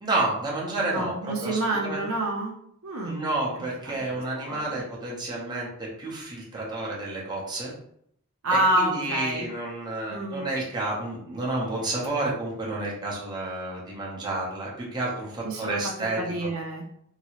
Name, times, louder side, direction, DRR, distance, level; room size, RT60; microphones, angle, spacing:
voice 1, 0.0-2.0 3.1-7.7 8.7-16.5, right 2 dB, 20° right, -5 dB, 0.8 m, -30 dB
voice 2, 0.9-2.5 2.8-3.2 3.9-4.2 4.4-4.6 8.4-9.5 10.1-10.5 15.4-15.8 16.2-16.9, right 1 dB, 65° right, 0 dB, 0.6 m, -27 dB
3.0 x 2.8 x 2.9 m, 0.69 s
head